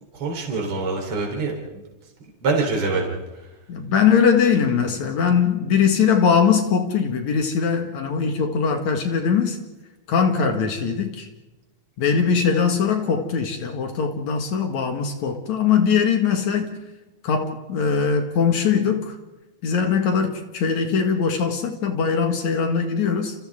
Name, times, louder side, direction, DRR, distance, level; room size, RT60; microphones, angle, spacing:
voice 1, 0.1-1.5 2.4-3.1, right 3 dB, 45° right, 4.6 m, -24 dB
voice 2, 3.7-9.6 10.1-11.3 12.0-16.7 17.2-19.2 19.6-23.3, left 6 dB, 65° left, 3.0 m, -21 dB
29.5 x 29.0 x 3.7 m
omnidirectional pair, 3.6 m